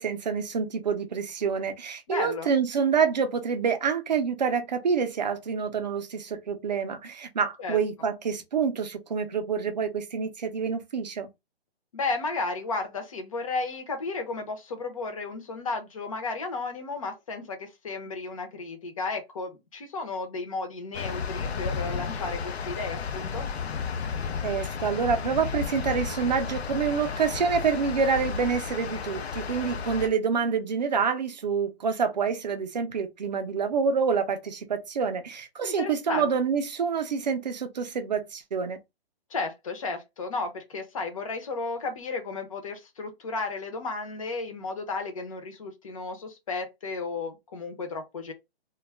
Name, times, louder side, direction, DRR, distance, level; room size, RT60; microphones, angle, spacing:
voice 1, 0.0-11.3 24.4-38.8, right 6 dB, 45° right, 0.5 m, -27 dB
voice 2, 2.1-2.5 7.6-7.8 11.9-23.5 35.6-36.3 39.3-48.3, left 3 dB, 35° left, 0.6 m, -33 dB
sound 1, 20.9-30.1, left 6 dB, 85° left, 0.5 m, -33 dB
2.2 x 2.0 x 3.3 m
hypercardioid pair, 165°, 31 cm